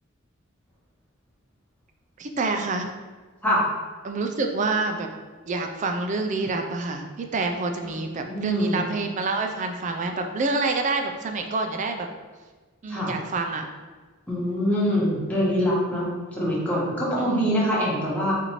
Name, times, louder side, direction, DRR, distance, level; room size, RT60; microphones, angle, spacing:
voice 1, 2.2-2.9 4.0-5.1 5.5-12.1 12.8-13.7 17.2-17.5, right 3 dB, 35° right, 5 dB, 0.3 m, -27 dB
voice 2, 7.9-8.8 12.9-13.1 14.3-18.3, equal, 5° left, -7 dB, 1.0 m, -24 dB
4.1 x 2.6 x 3.0 m, 1.4 s
head